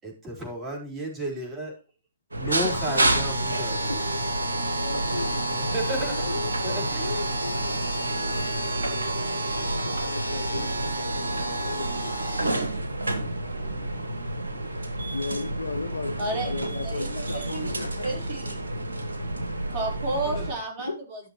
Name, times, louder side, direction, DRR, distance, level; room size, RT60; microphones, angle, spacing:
voice 1, 0.0-1.7 2.3-4.0 5.5-6.2 6.6-7.2 13.4-14.0 14.4-14.7 20.3-20.4, right 1 dB, 20° right, 4.3 m, -34 dB
sound 1, 2.3-20.5, right 1 dB, 85° right, 1.7 m, -29 dB
voice 2, 2.4-3.3 3.8-4.2 4.8-5.4 6.1-7.8 8.1-12.3 13.2-13.4 14.7-18.1 19.2-19.3 20.3-20.4 20.8-21.0, left 4 dB, 80° left, 1.1 m, -37 dB
voice 3, 16.2-16.6 16.8-17.7 18.0-18.6 19.7-21.2, right 2 dB, 35° right, 4.0 m, -32 dB
12.5 x 6.5 x 3.0 m
figure-of-eight pair, 125°, 0 cm